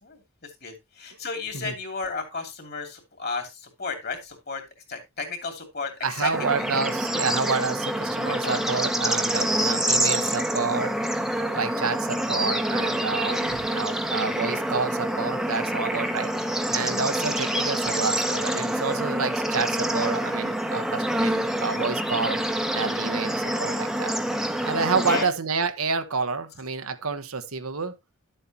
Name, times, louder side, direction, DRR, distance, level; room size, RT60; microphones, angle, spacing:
voice 1, 0.0-4.6 4.9-6.3 6.6-6.7 8.3-8.6 17.2-17.3 23.0-23.6 25.1-25.3, left 4 dB, 45° left, 2.7 m, -34 dB
voice 2, 6.0-11.0 11.5-16.3 16.7-22.4 22.7-24.1 24.6-27.9, right 4 dB, 90° right, 1.1 m, -29 dB
Bird / Insect / Frog, 6.3-25.2, right 1 dB, ahead, 0.8 m, -26 dB
11.5 x 7.8 x 2.8 m
head